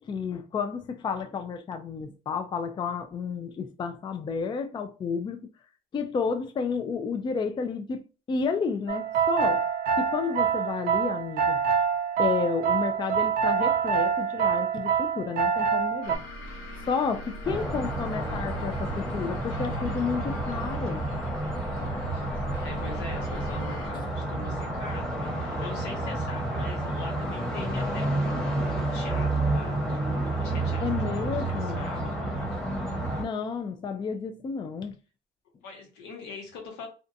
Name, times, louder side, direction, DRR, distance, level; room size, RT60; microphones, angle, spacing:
voice 1, 0.0-5.5 5.9-9.7 10.0-11.6 12.2-16.2 16.9-21.1 21.8-21.9 23.9-24.1 30.8-31.8 33.2-35.0, left 5 dB, 25° left, 0.3 m, -31 dB
sound 1, 8.9-16.2, right 7 dB, 65° right, 0.5 m, -26 dB
sound 2, 16.0-23.9, equal, 65° left, 1.1 m, -40 dB
sound 3, 17.4-33.2, right 2 dB, 5° left, 1.0 m, -30 dB
voice 2, 22.6-29.8 30.4-32.1 35.6-36.9, left 4 dB, 90° left, 1.1 m, -42 dB
2.6 x 2.2 x 2.6 m
cardioid pair, 110°, 17 cm